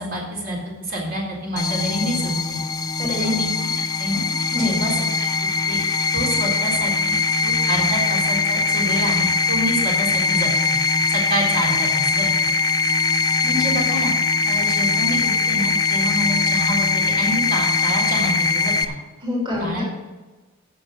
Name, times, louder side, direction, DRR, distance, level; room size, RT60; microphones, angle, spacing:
voice 1, 0.0-2.6 3.1-3.5 4.0-4.2 4.6-4.9 5.2-5.3 5.7-5.8 6.1-10.8 11.1-12.3 13.4-14.1 14.5-18.9 19.6-19.8, equal, 45° right, -2 dB, 3.8 m, -27 dB
sound 1, 1.6-18.8, left 4 dB, 20° left, 0.5 m, -21 dB
voice 2, 3.0-3.3 4.5-4.8 19.2-19.8, left 2 dB, 25° right, -3 dB, 3.0 m, -25 dB
11.0 x 7.1 x 6.7 m, 1.2 s
head